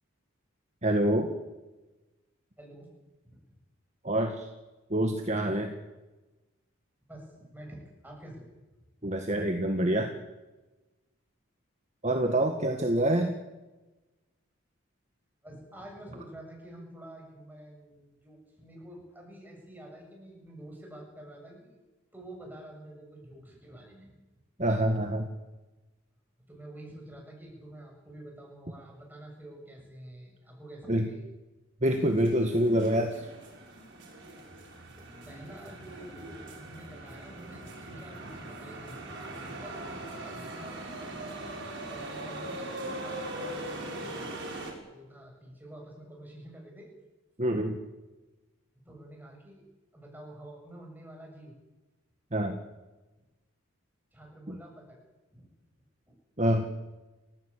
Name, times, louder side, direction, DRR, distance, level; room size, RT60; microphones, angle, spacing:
voice 1, 0.8-1.3 4.0-4.5 4.9-5.7 9.0-10.2 12.0-13.4 24.6-25.3 30.9-31.1 31.8-33.3 47.4-47.8 52.3-52.6 54.5-54.6 56.4-56.7, right 1 dB, 35° right, 4 dB, 1.8 m, -26 dB
voice 2, 2.6-2.9 3.2-3.5 7.1-8.5 9.0-9.2 15.4-21.8 22.1-24.2 26.5-31.3 34.8-40.9 41.9-42.7 42.9-43.7 43.9-44.3 44.9-46.9 48.8-49.6 49.9-51.6 54.1-55.0 55.3-55.5 56.1-56.2, right 1 dB, 10° right, 0 dB, 7.4 m, -48 dB
sound 1, 31.9-44.7, right 1 dB, 55° right, 6.4 m, -41 dB
29.5 x 15.0 x 8.5 m, 1.1 s
head